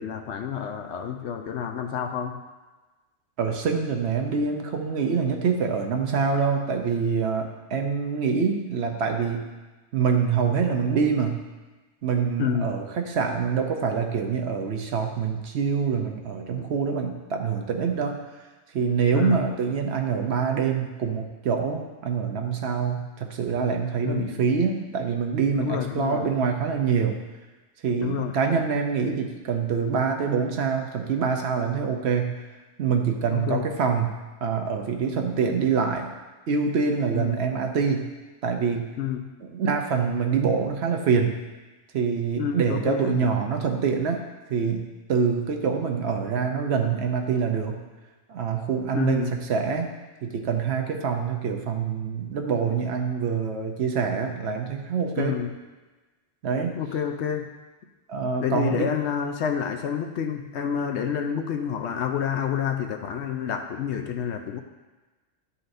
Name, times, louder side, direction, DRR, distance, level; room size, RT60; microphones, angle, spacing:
voice 1, 0.0-2.4 12.4-12.7 19.1-19.4 24.0-24.4 25.6-26.2 28.0-28.3 33.3-33.7 37.1-37.5 39.0-39.3 42.4-43.3 48.9-49.4 55.2-55.5 56.8-57.5 58.4-64.6, left 8 dB, 70° left, 5 dB, 0.8 m, -29 dB
voice 2, 3.4-9.4 9.9-11.4 12.0-18.2 18.7-27.2 27.8-32.4 32.8-34.1 34.4-36.1 36.5-38.1 38.4-38.9 39.4-41.3 41.9-44.2 44.5-47.8 48.3-49.9 50.2-55.4 56.4-56.7 58.1-58.9, right 6 dB, 65° right, 3 dB, 0.9 m, -25 dB
11.0 x 4.0 x 2.6 m, 1.2 s
omnidirectional pair, 1.3 m